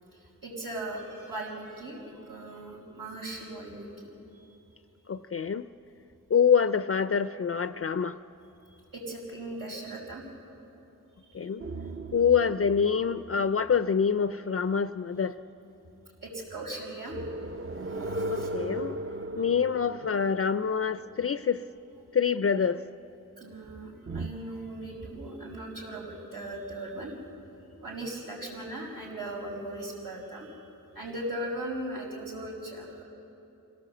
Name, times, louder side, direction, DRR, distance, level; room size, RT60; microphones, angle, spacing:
voice 1, 0.4-3.9 4.3-4.6 8.7-10.2 11.3-11.5 16.2-17.2 17.9-18.5 23.4-27.1 27.8-30.6 30.9-33.0, right 1 dB, 85° right, -7 dB, 5.3 m, -38 dB
voice 2, 5.1-5.7 6.3-8.2 11.3-11.6 12.1-15.3 18.3-19.0 19.4-21.6 22.1-22.8, left 6 dB, 45° left, 12 dB, 0.4 m, -26 dB
sound 1, 11.6-15.1 17.1-21.7 24.1-24.3, right 2 dB, 40° right, 0.7 m, -37 dB
26.0 x 17.0 x 7.7 m, 2.9 s
wide cardioid pair, 115°, 34 cm